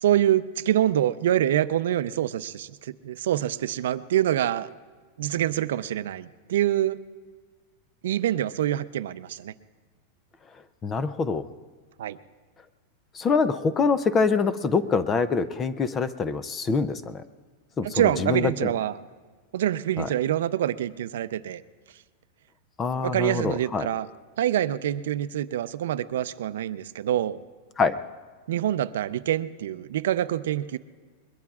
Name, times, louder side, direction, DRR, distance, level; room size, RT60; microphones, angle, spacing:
voice 1, 0.0-4.7 5.2-7.0 8.0-9.5 12.0-12.2 17.8-18.9 19.5-21.6 23.0-24.1 24.4-27.4 28.5-30.8, right 12 dB, 75° right, 13 dB, 0.5 m, -25 dB
voice 2, 10.8-11.4 13.1-17.2 17.8-18.7 20.0-20.1 22.8-23.9 27.8-28.0, left 5 dB, 15° left, 14 dB, 0.4 m, -25 dB
22.5 x 22.0 x 2.4 m, 1.5 s
supercardioid pair, 180°, 0 cm